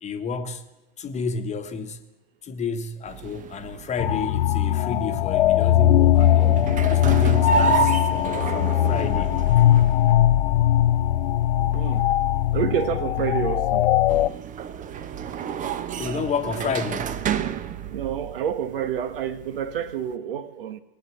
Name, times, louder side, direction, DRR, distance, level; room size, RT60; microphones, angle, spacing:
voice 1, 0.0-0.7 1.0-2.0 2.4-9.4 16.0-17.2, left 4 dB, 25° left, 1.3 m, -30 dB
sound 1, 3.1-20.1, right 8 dB, 25° right, 0.9 m, -32 dB
sound 2, 4.0-14.3, left 12 dB, 75° left, 0.5 m, -20 dB
voice 2, 11.7-12.1 12.5-13.8 15.3-15.4 17.9-20.8, right 9 dB, 70° right, 1.2 m, -28 dB
19.5 x 8.2 x 7.5 m
hypercardioid pair, 100°, 30 cm